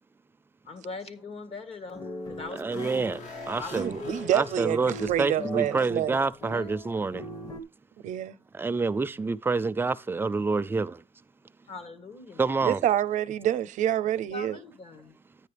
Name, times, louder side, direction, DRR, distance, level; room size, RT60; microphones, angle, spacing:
voice 1, 0.6-3.1 3.6-4.3 6.5-6.9 11.7-12.4 14.3-15.2, left 4 dB, 55° left, 1.9 m, -42 dB
sound 1, 1.9-7.6, equal, 30° left, 1.0 m, -40 dB
voice 2, 2.6-3.2 3.5-4.0 4.3-7.3 8.5-11.0 12.4-12.8, right 4 dB, 15° right, 0.4 m, -27 dB
sound 2, 2.7-5.9 6.1-6.2, left 3 dB, 75° left, 2.5 m, -45 dB
voice 3, 3.7-6.2 8.0-8.3 12.6-14.6, right 11 dB, 90° right, 0.6 m, -27 dB
10.5 x 9.3 x 3.4 m
cardioid pair, 135°, 12 cm